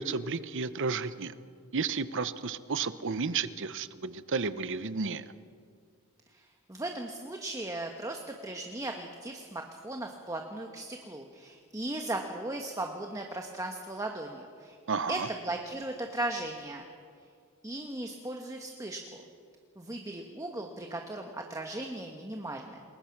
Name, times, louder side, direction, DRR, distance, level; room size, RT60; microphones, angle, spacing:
voice 1, 0.0-1.3 1.7-5.2 14.9-15.3, right 4 dB, 55° right, 14 dB, 0.9 m, -32 dB
voice 2, 6.3-14.8 15.1-16.9 17.6-19.2 19.8-22.8, right 2 dB, 15° right, 3 dB, 1.2 m, -37 dB
28.0 x 20.5 x 6.0 m, 2.2 s
head